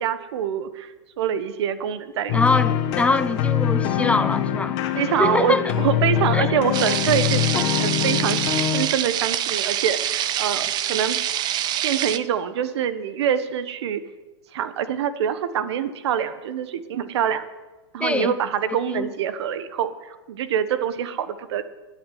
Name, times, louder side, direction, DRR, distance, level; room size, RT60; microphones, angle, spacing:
voice 1, 0.0-2.4 4.9-8.4 8.7-11.2 11.8-14.0 14.5-17.4 17.9-21.6, right 9 dB, 65° right, 1.4 m, -25 dB
sound 1, 2.3-8.9, left 10 dB, 45° left, 1.9 m, -23 dB
voice 2, 2.3-4.8 5.2-5.7 6.3-6.5 7.6-7.7 18.0-18.3 18.9-19.1, left 3 dB, 10° left, 0.5 m, -23 dB
sound 2, 6.7-12.2, right 11 dB, 30° right, 0.8 m, -25 dB
14.0 x 9.8 x 9.6 m
hypercardioid pair, 135°, 15 cm